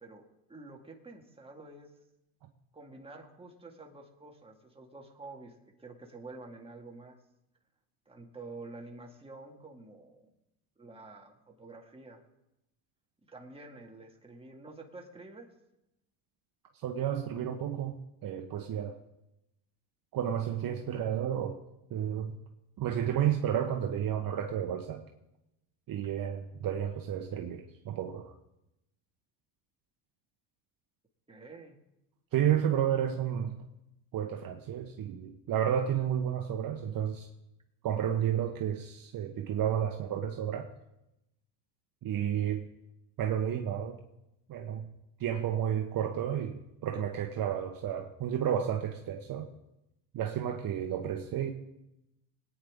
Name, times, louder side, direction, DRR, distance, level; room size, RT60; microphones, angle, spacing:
voice 1, 0.0-1.9 2.7-7.2 8.1-10.3 10.8-12.2 13.2-15.5 20.7-20.9 31.3-31.8, right 3 dB, 10° right, 1 dB, 2.0 m, -49 dB
voice 2, 16.8-19.0 20.1-21.6 21.9-22.3 22.8-25.0 25.9-28.3 32.3-33.6 34.1-37.3 37.8-40.7 42.0-42.7 43.2-44.0 44.5-44.9 45.2-49.5 50.1-51.5, right 9 dB, 45° right, 4 dB, 1.1 m, -31 dB
20.0 x 9.4 x 3.7 m, 0.88 s
supercardioid pair, 105°, 48 cm